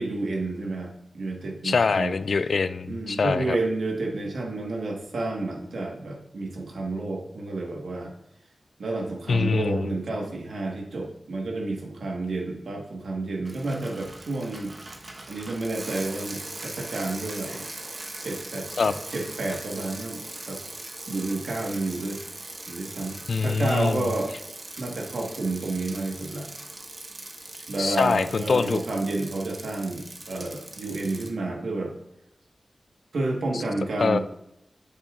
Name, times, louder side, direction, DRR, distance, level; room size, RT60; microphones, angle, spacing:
voice 1, 0.0-2.2 2.9-8.1 8.8-14.7 15.3-17.7 18.2-20.2 20.5-20.6 21.1-22.2 22.7-24.3 24.8-26.5 27.7-31.9 33.1-34.2, right 2 dB, 90° right, 1 dB, 1.4 m, -30 dB
voice 2, 1.6-3.6 9.3-9.9 18.8-19.0 23.3-24.1 27.8-28.8 33.5-33.6 34.0-34.2, left 4 dB, 75° left, 13 dB, 0.3 m, -24 dB
Bicycle, 13.4-31.3, right 2 dB, 50° right, 1.1 m, -40 dB
8.1 x 7.0 x 2.5 m, 0.83 s
cardioid pair, 50°, 0 cm